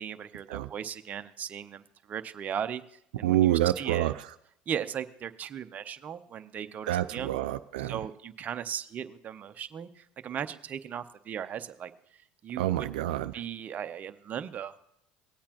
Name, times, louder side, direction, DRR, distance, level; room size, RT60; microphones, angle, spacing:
voice 1, 0.0-3.5 3.8-4.1 4.7-7.3 7.8-12.9 13.3-14.7, right 8 dB, 40° right, 9 dB, 0.7 m, -37 dB
voice 2, 3.2-4.3 6.9-8.0 12.6-13.3, right 13 dB, 85° right, 10 dB, 0.4 m, -27 dB
18.5 x 8.5 x 3.0 m, 0.75 s
supercardioid pair, 85°, 4 cm